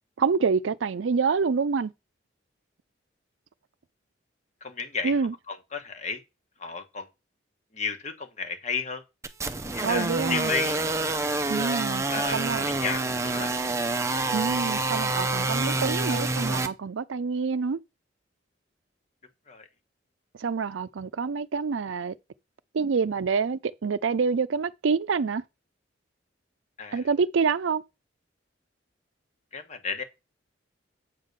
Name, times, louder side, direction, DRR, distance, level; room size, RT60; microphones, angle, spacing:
voice 1, 0.2-1.9 5.0-5.3 9.8-10.5 11.5-12.0 12.3-12.7 14.3-17.8 20.4-22.1 22.7-25.4 26.9-27.8, right 5 dB, 80° right, 0.5 m, -27 dB
voice 2, 4.6-5.2 5.5-6.2 6.6-7.1 7.7-9.0 9.7-10.8 12.1-12.4 12.7-13.5 19.5-19.7 26.8-27.0 29.5-30.0, left 5 dB, 35° left, 1.2 m, -33 dB
sound 1, 9.2-16.7, right 2 dB, 15° right, 0.6 m, -27 dB
8.1 x 3.8 x 6.6 m
head